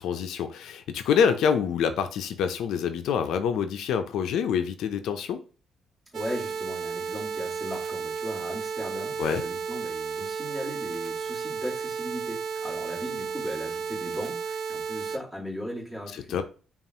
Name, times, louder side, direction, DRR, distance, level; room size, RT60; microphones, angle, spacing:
voice 1, 0.0-5.4 9.2-9.4 16.3-16.4, left 7 dB, 80° left, 0.4 m, -26 dB
voice 2, 6.1-16.4, equal, 15° right, 1.9 m, -38 dB
sound 1, 6.1-15.2, right 6 dB, 60° right, 0.4 m, -33 dB
5.3 x 2.4 x 2.8 m
cardioid pair, 90°, 0 cm